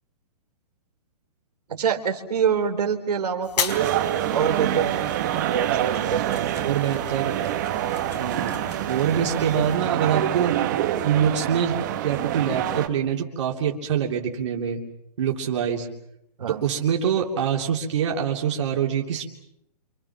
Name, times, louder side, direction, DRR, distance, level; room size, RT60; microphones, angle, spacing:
voice 1, 1.7-3.8 4.3-5.0 5.5-6.5 16.4-16.6, right 7 dB, 80° right, 5 dB, 3.9 m, -25 dB
sound 1, 3.4-9.8, left 6 dB, 85° left, 4.1 m, -36 dB
sound 2, 3.7-12.9, right 12 dB, 30° right, 1.5 m, -26 dB
voice 2, 6.6-7.4 8.2-8.6 8.9-10.6 11.0-14.8 15.2-15.9 16.5-19.3, right 8 dB, 50° right, 0 dB, 3.2 m, -25 dB
29.5 x 27.0 x 6.0 m, 0.80 s
hypercardioid pair, 175°, 20 cm